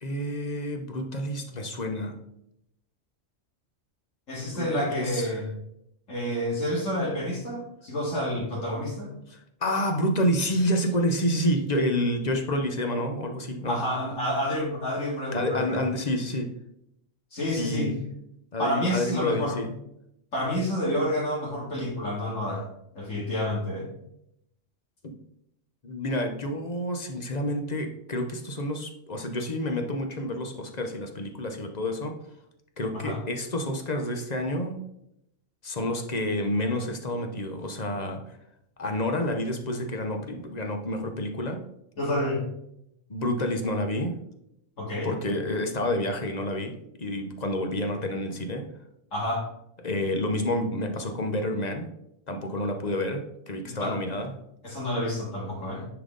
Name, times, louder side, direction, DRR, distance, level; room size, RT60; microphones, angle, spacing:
voice 1, 0.0-2.1 4.5-5.4 9.3-13.8 15.3-16.5 17.4-18.0 18.5-19.7 25.0-25.1 25.8-32.2 32.8-34.8 35.6-38.4 38.8-41.6 43.1-44.1 45.0-48.7 49.8-51.9 52.3-54.3, left 1 dB, 40° left, 5 dB, 0.8 m, -29 dB
voice 2, 4.3-5.5 6.1-9.1 13.7-15.8 17.3-17.9 18.6-19.6 20.3-22.7 23.0-23.9 32.9-33.2 42.0-42.4 44.8-45.1 49.1-49.5 53.6-54.0 54.6-55.9, equal, 80° left, -4 dB, 2.6 m, -29 dB
9.9 x 4.0 x 3.8 m, 0.78 s
omnidirectional pair, 1.3 m